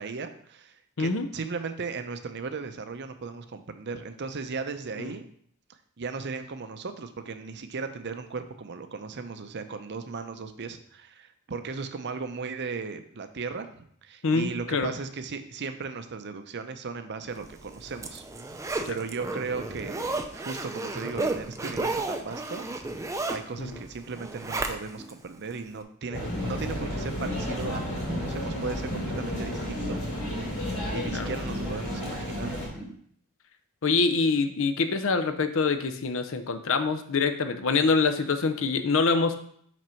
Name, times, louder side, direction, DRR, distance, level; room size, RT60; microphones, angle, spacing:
voice 1, 0.0-5.3 6.0-18.2 18.9-22.7 23.3-30.0 30.9-32.8, right 4 dB, 50° right, 9 dB, 0.6 m, -36 dB
voice 2, 14.2-14.9 23.6-23.8 31.1-31.3 33.8-39.3, left 4 dB, 65° left, 9 dB, 0.6 m, -25 dB
Zipper (clothing), 17.5-25.1 25.5-25.6, right 2 dB, 15° right, 0.5 m, -33 dB
sound 1, 26.1-32.7, equal, 90° left, 2.9 m, -33 dB
sound 2, 26.1-32.9, left 1 dB, ahead, 1.1 m, -37 dB
6.2 x 5.1 x 4.4 m, 0.64 s
head